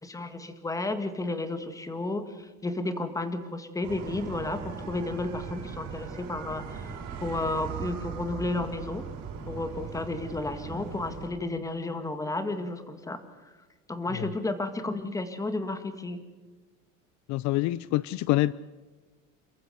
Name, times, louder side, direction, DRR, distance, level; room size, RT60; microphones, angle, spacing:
voice 1, 0.0-9.1 9.5-13.2 13.9-16.2, left 2 dB, 10° left, 9 dB, 1.8 m, -32 dB
sound 1, 3.8-11.3, right 6 dB, 60° right, 6.0 m, -39 dB
voice 2, 17.3-18.5, left 17 dB, 60° left, 19 dB, 0.6 m, -26 dB
28.0 x 14.5 x 7.9 m, 1.3 s
cardioid pair, 150°, 32 cm